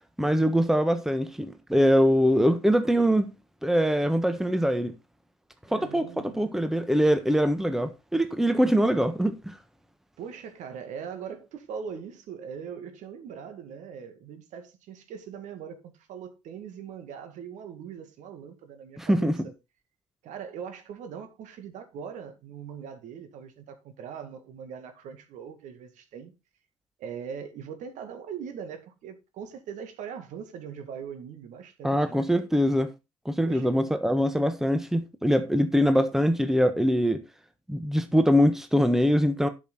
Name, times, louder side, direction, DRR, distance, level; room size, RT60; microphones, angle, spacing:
voice 1, 0.2-3.3 3.6-4.9 5.7-9.6 19.0-19.4 31.8-32.9 33.2-37.2 37.7-39.5, equal, 5° right, 1.3 m, -23 dB
voice 2, 5.7-6.5 10.2-19.5 20.2-26.3 27.0-32.3 33.4-33.8, right 7 dB, 55° right, 2.2 m, -41 dB
12.0 x 6.3 x 4.2 m
figure-of-eight pair, 55°, 15 cm